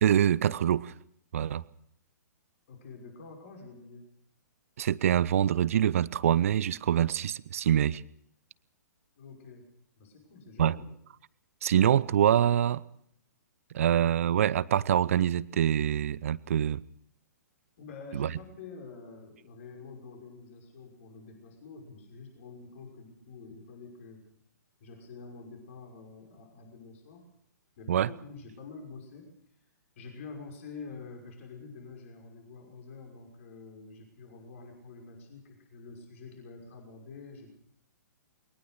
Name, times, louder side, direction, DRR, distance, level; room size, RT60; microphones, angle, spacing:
voice 1, 0.0-0.9 1.3-1.6 4.8-8.0 10.6-10.8 11.6-12.8 13.7-16.8 18.1-18.3 27.9-28.1, right 10 dB, 50° right, 0.8 m, -25 dB
voice 2, 2.7-4.1 9.2-9.6 10.0-10.9 17.8-24.2 24.8-27.3 27.8-29.3 30.0-37.5, left 4 dB, 45° left, 5.9 m, -47 dB
22.5 x 19.0 x 6.6 m
figure-of-eight pair, 115°, 10 cm